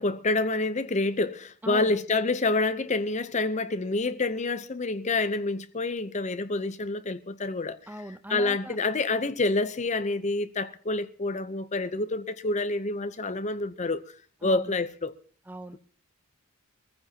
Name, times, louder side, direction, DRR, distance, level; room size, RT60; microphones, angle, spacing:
voice 1, 0.0-7.8 8.3-14.0 14.4-15.1, left 3 dB, 30° left, 0.7 m, -27 dB
voice 2, 1.6-1.9 7.9-8.8 14.4-14.8 15.5-15.8, right 1 dB, 10° right, 0.6 m, -39 dB
22.0 x 15.0 x 2.9 m
head